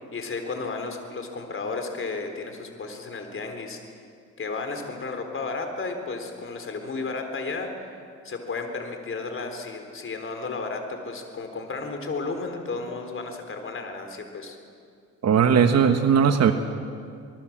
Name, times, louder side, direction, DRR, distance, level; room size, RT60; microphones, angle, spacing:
voice 1, 0.1-3.8 4.4-7.7 8.2-14.6, left 3 dB, 45° left, 5 dB, 4.1 m, -33 dB
voice 2, 15.2-16.5, right 7 dB, 60° right, 7 dB, 1.4 m, -18 dB
26.5 x 20.0 x 7.5 m, 2.3 s
cardioid pair, 90°, 30 cm